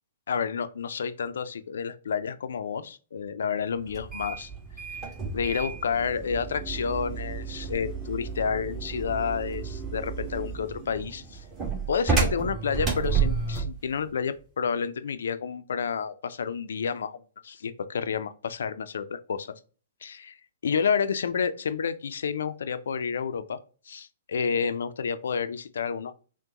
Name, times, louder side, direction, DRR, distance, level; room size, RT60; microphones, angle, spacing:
voice 1, 0.3-4.5 4.9-11.4 11.9-17.2 17.4-19.5 20.0-20.4 20.6-23.6 23.9-26.2, left 6 dB, 70° left, 0.5 m, -30 dB
sound 1, 3.9-13.8, right 5 dB, 20° right, 1.8 m, -31 dB
6.1 x 2.2 x 2.9 m
hypercardioid pair, 125°, 0 cm